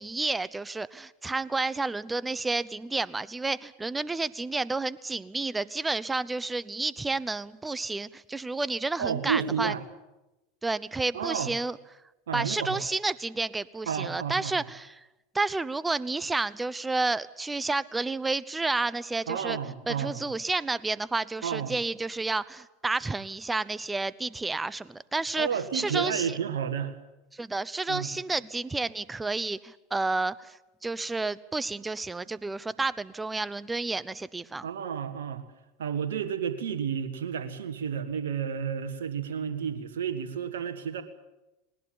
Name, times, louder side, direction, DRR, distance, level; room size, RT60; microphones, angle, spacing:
voice 1, 0.0-9.7 10.6-11.8 12.3-14.9 15.3-19.6 19.9-25.5 25.7-26.4 27.3-30.6 30.8-34.7, right 3 dB, 10° right, 19 dB, 0.8 m, -30 dB
voice 2, 9.0-9.8 11.1-11.5 12.3-12.9 13.8-14.7 19.3-20.3 21.4-21.7 25.4-27.0 27.9-28.1 34.6-35.4 35.8-41.0, right 7 dB, 75° right, 8 dB, 1.6 m, -31 dB
20.0 x 19.5 x 8.8 m, 0.99 s
hypercardioid pair, 85°, 0 cm